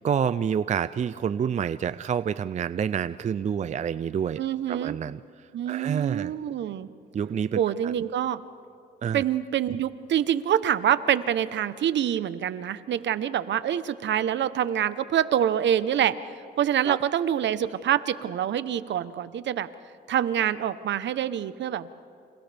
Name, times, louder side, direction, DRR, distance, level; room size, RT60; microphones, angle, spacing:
voice 1, 0.0-4.4 4.7-5.2 5.7-6.3 7.1-7.9 9.0-9.2 16.9-17.0, right 8 dB, 35° right, 14 dB, 0.4 m, -28 dB
voice 2, 4.4-4.9 5.5-6.9 7.6-8.4 9.1-16.2 16.6-19.7 20.1-21.9, right 10 dB, 65° right, 14 dB, 1.0 m, -26 dB
30.0 x 27.5 x 3.5 m, 2.7 s
cardioid pair, 90°, 20 cm